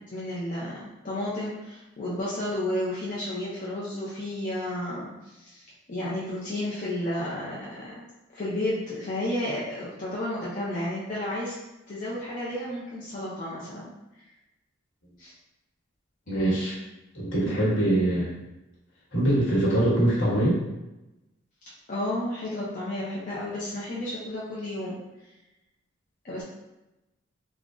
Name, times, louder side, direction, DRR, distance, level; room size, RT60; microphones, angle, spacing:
voice 1, 0.1-8.1 8.3-11.6 11.9-13.9 15.2-15.3 16.3-16.7 21.9-25.0 26.2-26.4, left 1 dB, 40° left, -8 dB, 0.5 m, -32 dB
voice 2, 16.3-16.7 17.1-18.3 19.1-20.6, right 1 dB, 75° left, -8 dB, 1.3 m, -23 dB
3.6 x 2.0 x 2.4 m, 0.99 s
head